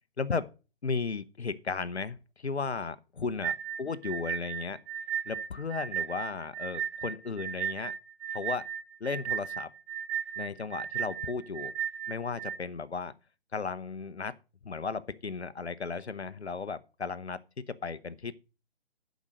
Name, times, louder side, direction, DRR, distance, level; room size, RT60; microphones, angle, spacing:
voice 1, 0.8-4.8 5.3-7.9 8.3-8.7 9.0-9.7 10.4-11.7 12.1-13.1 13.5-14.3 14.6-18.4, left 4 dB, 90° left, 0.9 m, -35 dB
sound 1, 3.4-12.6, right 9 dB, 25° right, 1.3 m, -35 dB
12.0 x 5.2 x 6.3 m
figure-of-eight pair, 135°, 32 cm